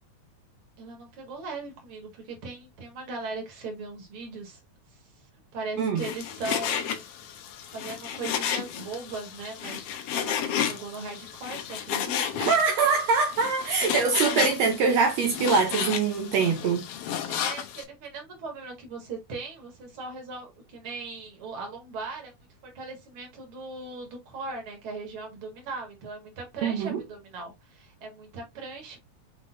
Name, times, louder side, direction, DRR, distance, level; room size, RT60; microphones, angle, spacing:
voice 1, 0.8-4.6 4.9-5.0 5.5-7.0 7.7-12.6 17.3-22.3 22.6-29.0, right 3 dB, 50° right, 2.2 m, -39 dB
Frying (food), 6.0-17.8, left 9 dB, 90° left, 1.3 m, -32 dB
voice 2, 12.4-16.8 26.6-27.0, right 5 dB, 70° right, 1.7 m, -23 dB
6.1 x 3.4 x 2.6 m
omnidirectional pair, 3.7 m